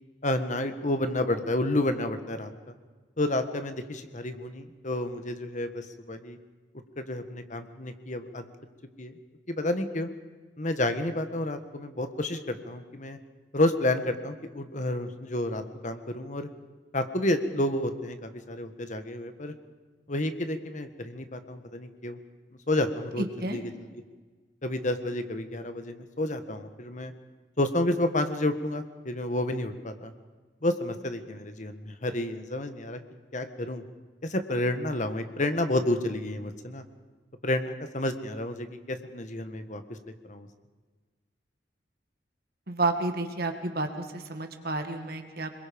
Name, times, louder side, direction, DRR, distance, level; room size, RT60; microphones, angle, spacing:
voice 1, 0.2-2.5 3.2-6.4 7.0-8.5 9.0-9.1 9.5-10.1 10.6-13.2 13.5-16.5 16.9-19.5 20.1-22.2 22.7-23.7 24.6-27.1 27.6-30.1 30.6-33.0 33.3-33.8 34.2-36.8 37.4-39.8 40.3-40.5, left 1 dB, 45° left, 8 dB, 1.5 m, -30 dB
voice 2, 23.2-23.6 42.7-45.5, right 2 dB, 55° right, 6 dB, 2.1 m, -30 dB
26.5 x 22.0 x 5.3 m, 1.4 s
head